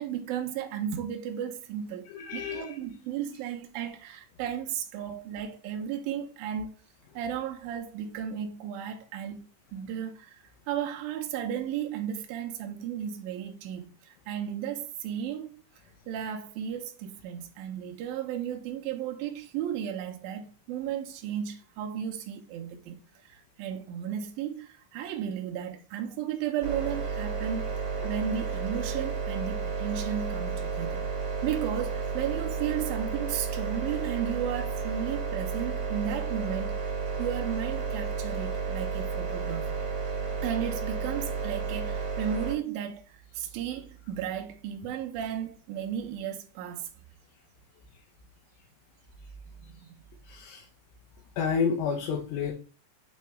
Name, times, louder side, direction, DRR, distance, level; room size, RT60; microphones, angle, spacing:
voice 1, 0.0-6.8 7.1-9.5 9.7-15.6 16.1-23.0 23.2-27.7 28.0-31.2 31.4-36.7 37.2-39.8 40.4-46.9 49.5-50.1, right 9 dB, 80° right, 2.2 m, -34 dB
voice 2, 2.1-2.8 50.3-50.7 51.4-52.5, left 6 dB, 80° left, 2.8 m, -30 dB
sound 1, 26.6-42.5, right 5 dB, 45° right, 2.4 m, -32 dB
9.1 x 3.4 x 3.1 m
omnidirectional pair, 5.1 m